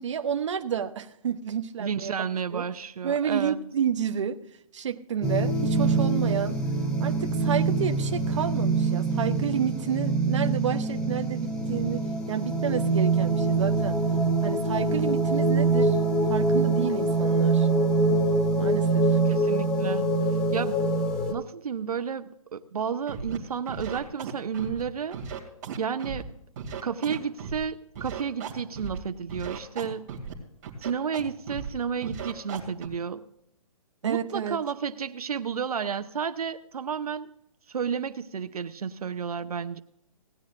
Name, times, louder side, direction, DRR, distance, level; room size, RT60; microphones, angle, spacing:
voice 1, 0.0-2.1 2.5-2.7 3.0-4.4 4.7-6.6 7.0-14.0 14.4-16.0 16.3-17.7 18.6-19.2 34.0-34.6, right 8 dB, 55° right, 0.9 m, -30 dB
voice 2, 1.8-3.6 19.3-20.1 20.5-20.8 21.3-25.2 25.8-26.3 26.8-30.1 30.8-33.3 34.0-37.3 37.7-39.8, right 7 dB, 90° right, 0.8 m, -31 dB
sound 1, 5.2-21.3, right 3 dB, 5° left, 0.4 m, -24 dB
Scratching (performance technique), 23.1-23.4 23.7-24.8 25.1-26.2 26.6-27.6 28.0-29.0 29.3-30.3 30.6-31.2 31.5-31.7 32.0-32.9, right 6 dB, 30° right, 2.6 m, -36 dB
17.5 x 10.5 x 2.5 m
hypercardioid pair, 165°, 19 cm